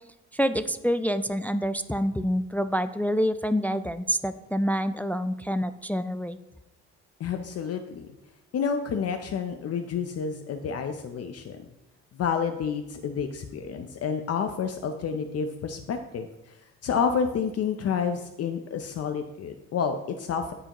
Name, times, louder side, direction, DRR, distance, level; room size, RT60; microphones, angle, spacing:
voice 1, 0.3-6.4, equal, 5° left, 11 dB, 0.3 m, -27 dB
voice 2, 7.2-8.1 8.5-11.6 12.1-20.5, left 6 dB, 55° left, 6 dB, 0.6 m, -29 dB
14.0 x 4.8 x 3.0 m, 0.93 s
cardioid pair, 90°, 30 cm